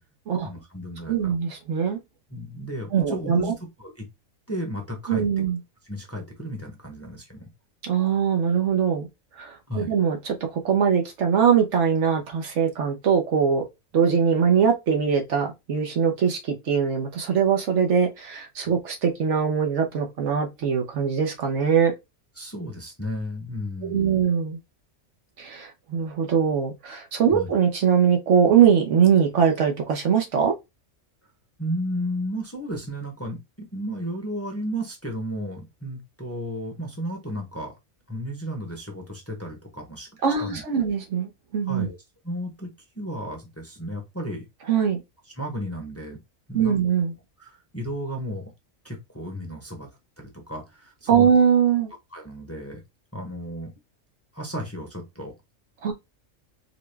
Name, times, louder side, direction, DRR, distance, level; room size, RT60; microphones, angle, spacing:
voice 1, 0.4-1.3 2.3-4.1 4.5-5.3 5.9-7.5 9.7-9.9 22.4-24.2 27.3-27.5 31.6-37.7 38.1-40.1 40.4-40.9 41.7-42.0 42.2-44.4 45.4-46.2 46.5-46.8 47.4-48.4 48.8-49.9 50.2-51.3 52.1-52.8 53.1-53.7 54.3-55.3, equal, 15° left, 0.8 m, -33 dB
voice 2, 1.1-2.0 2.9-3.5 5.1-5.6 7.8-9.1 9.4-13.7 13.9-21.9 23.8-24.6 25.4-30.5 40.2-41.9 44.7-45.0 46.5-47.1 51.1-51.9 55.8-55.9, right 7 dB, 70° right, 1.2 m, -22 dB
4.1 x 2.3 x 3.3 m
omnidirectional pair, 1.3 m